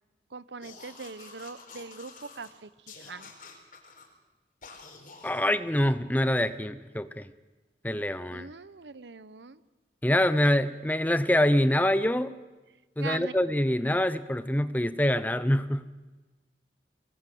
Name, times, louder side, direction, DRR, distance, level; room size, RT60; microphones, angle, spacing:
voice 1, 0.3-3.3 8.3-9.6 13.0-13.3, right 4 dB, 90° right, 16 dB, 0.9 m, -41 dB
sound 1, 0.6-2.5 2.9-4.1 4.6-5.4, left 4 dB, 50° left, 4.5 m, -49 dB
voice 2, 5.2-7.3 7.8-8.5 10.0-12.3 13.0-15.9, left 1 dB, 10° left, 13 dB, 0.8 m, -25 dB
25.0 x 20.0 x 7.9 m, 1.2 s
head